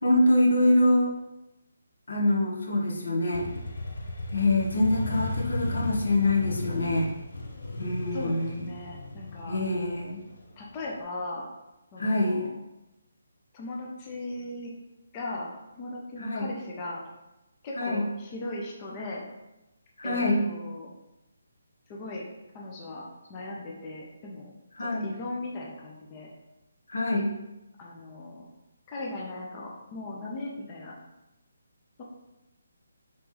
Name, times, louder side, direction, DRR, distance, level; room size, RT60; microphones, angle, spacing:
voice 1, 0.0-1.1 2.1-3.5 4.3-7.1 7.8-8.6 9.5-10.2 12.0-12.5 16.2-16.5 17.7-18.0 20.0-20.4 24.8-25.1 26.9-27.4, left 1 dB, 90° left, -2 dB, 0.9 m, -25 dB
Motorcycle, 3.3-11.0, left 1 dB, 60° left, 0.6 m, -35 dB
voice 2, 8.1-9.6 10.6-11.5 11.9-12.5 13.5-14.7 15.1-15.5 15.8-17.0 17.6-19.2 20.0-20.9 21.9-22.2 22.5-24.5 24.8-26.3 27.8-28.4 28.9-30.9 32.0-32.1, left 2 dB, 15° left, -2 dB, 0.4 m, -38 dB
3.0 x 2.9 x 3.6 m, 0.97 s
hypercardioid pair, 180°, 0 cm